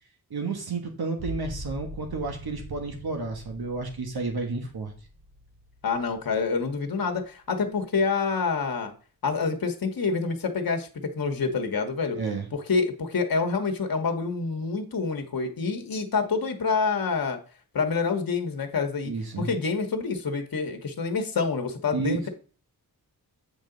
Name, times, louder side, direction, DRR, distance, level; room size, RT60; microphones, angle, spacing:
voice 1, 0.3-4.9 12.1-12.5 19.0-19.5 21.9-22.3, right 3 dB, 75° right, 3 dB, 1.5 m, -31 dB
sound 1, 1.2-6.6 7.1-7.7, equal, 60° right, 3.9 m, -43 dB
voice 2, 5.8-8.9 9.2-10.9 11.1-12.2 12.5-17.4 17.7-22.3, left 4 dB, 65° left, 5 dB, 1.4 m, -27 dB
8.7 x 5.4 x 3.9 m, 0.40 s
wide cardioid pair, 95°, 38 cm